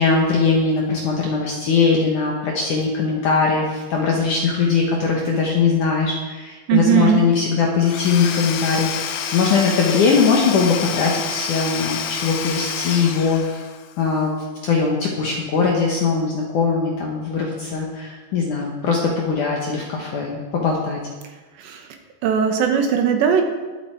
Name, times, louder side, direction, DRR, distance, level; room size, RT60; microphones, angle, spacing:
voice 1, 0.0-13.6 14.0-14.3 14.6-21.0, left 5 dB, 65° left, -1 dB, 2.0 m, -20 dB
voice 2, 6.7-7.2 21.6-21.9 22.2-23.4, right 7 dB, 75° right, 4 dB, 3.4 m, -18 dB
Domestic sounds home sounds / Tools, 7.8-13.9, left 7 dB, 80° left, 3.2 m, -28 dB
20.0 x 8.0 x 4.5 m, 1.3 s
omnidirectional pair, 5.2 m